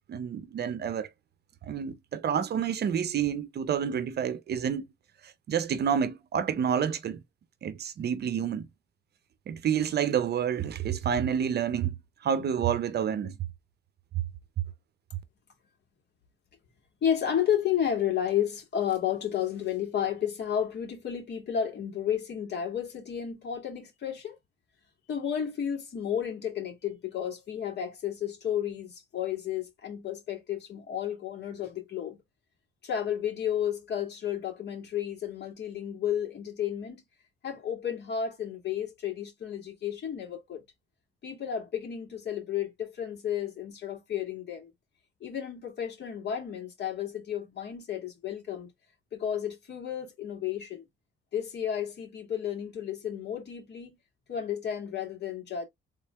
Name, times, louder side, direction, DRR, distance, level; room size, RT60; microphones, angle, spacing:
voice 1, 0.1-1.1 1.7-4.9 5.5-7.2 7.6-8.7 9.5-11.9 12.2-13.3, right 8 dB, 55° right, 0.6 m, -29 dB
voice 2, 17.0-24.4 25.1-32.2 32.8-37.0 37.4-40.6 41.2-44.7 45.2-48.7 49.1-50.8 51.3-54.0 54.3-55.7, left 9 dB, 60° left, 2.3 m, -32 dB
3.7 x 3.2 x 3.3 m
cardioid pair, 90°, 20 cm